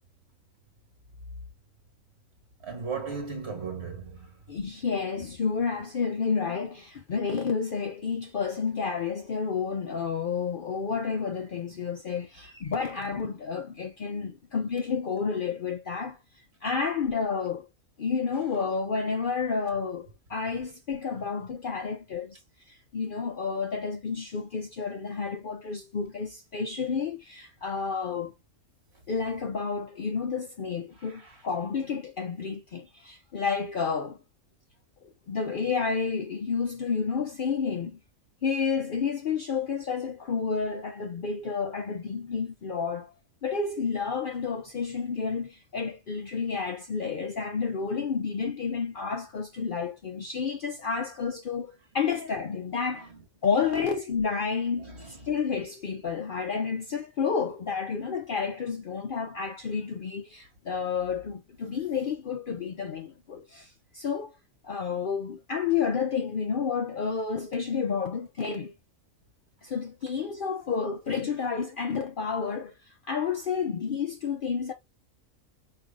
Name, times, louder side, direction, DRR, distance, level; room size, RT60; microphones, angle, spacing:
voice 1, 2.6-4.4 31.0-31.4 53.0-53.2 54.8-55.3, right 5 dB, 55° right, 1.9 m, -37 dB
voice 2, 4.5-16.2 16.6-17.7 18.0-22.4 22.7-28.3 29.1-34.2 35.3-38.0 38.4-43.1 43.4-53.1 53.4-64.3 64.6-68.7 69.6-74.7, left 5 dB, 55° left, 0.6 m, -30 dB
5.0 x 3.3 x 2.4 m
omnidirectional pair, 1.4 m